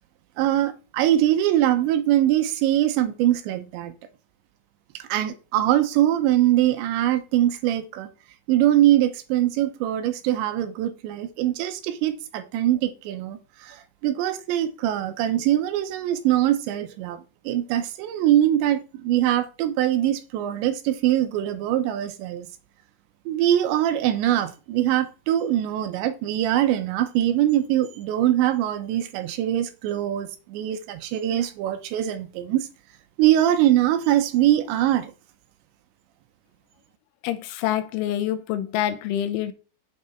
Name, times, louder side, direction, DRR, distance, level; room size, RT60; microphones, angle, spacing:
voice 1, 0.4-3.9 4.9-8.1 8.5-22.5 23.3-32.7 33.2-35.1, right 12 dB, 80° right, 3.0 m, -22 dB
voice 2, 37.2-39.5, left 12 dB, 90° left, 3.2 m, -26 dB
7.9 x 5.5 x 4.4 m
omnidirectional pair, 5.3 m